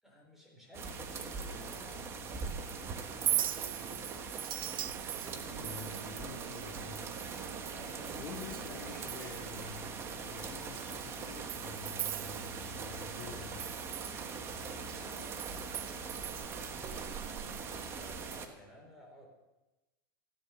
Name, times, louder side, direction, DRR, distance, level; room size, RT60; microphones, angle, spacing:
voice 1, 0.0-4.3 5.2-7.0 7.7-8.8 14.5-19.3, equal, ahead, -2 dB, 4.2 m, -55 dB
sound 1, 0.7-18.5, right 5 dB, 20° right, 1.2 m, -41 dB
Chink clink, 3.1-8.7 9.0-9.6 10.0-10.1 10.6-13.0 13.3-16.7, right 12 dB, 85° right, 0.8 m, -40 dB
Bowed string instrument, 5.2-9.0, right 7 dB, 65° right, 1.1 m, -52 dB
voice 2, 5.6-7.2 8.2-13.7, left 6 dB, 40° left, 0 dB, 2.1 m, -48 dB
14.5 x 10.0 x 6.7 m, 1.1 s
supercardioid pair, 150°, 12 cm